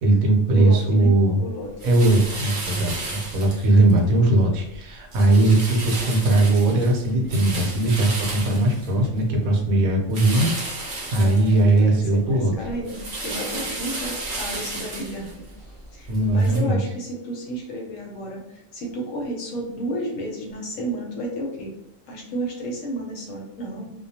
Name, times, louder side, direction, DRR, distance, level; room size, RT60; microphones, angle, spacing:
voice 1, 0.0-1.4 1.8-10.5 10.8-12.5 16.1-16.8, right 2 dB, 80° right, 1 dB, 1.0 m, -19 dB
voice 2, 0.5-1.7 11.2-21.7 22.1-23.9, right 1 dB, 70° left, 0 dB, 1.0 m, -32 dB
sound 1, 1.8-4.0 4.4-4.8 5.1-9.4 10.1-12.0 12.3-16.6, right 2 dB, 50° right, 0.7 m, -33 dB
2.3 x 2.2 x 2.7 m, 0.88 s
omnidirectional pair, 1.5 m